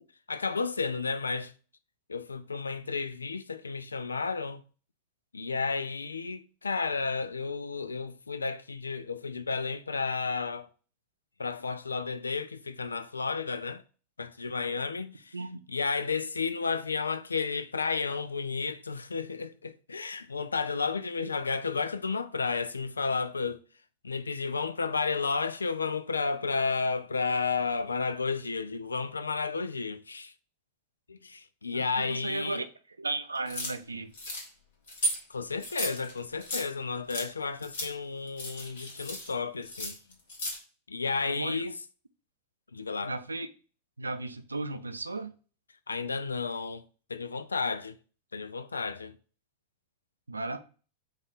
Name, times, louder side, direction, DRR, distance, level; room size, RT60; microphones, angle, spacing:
voice 1, 0.3-1.5 2.1-4.6 5.3-10.7 11.4-13.8 14.2-15.4 15.7-23.6 24.0-30.3 31.1-32.6 35.3-40.0 40.9-41.8 42.7-43.1 45.9-46.8 47.1-48.0 48.3-49.2, left 4 dB, 75° left, 0.3 m, -32 dB
voice 2, 31.7-32.7 33.0-34.1 41.3-41.6 43.0-43.5 44.0-45.3 50.3-50.6, right 2 dB, 80° right, 0.4 m, -35 dB
sound 1, 33.5-33.7 34.1-34.5 34.9-35.2 35.6-36.7 37.1-37.3 37.6-37.9 38.3-39.3 39.6-40.6, equal, 55° left, 1.3 m, -35 dB
5.0 x 2.4 x 3.9 m
figure-of-eight pair, 90°, 0 cm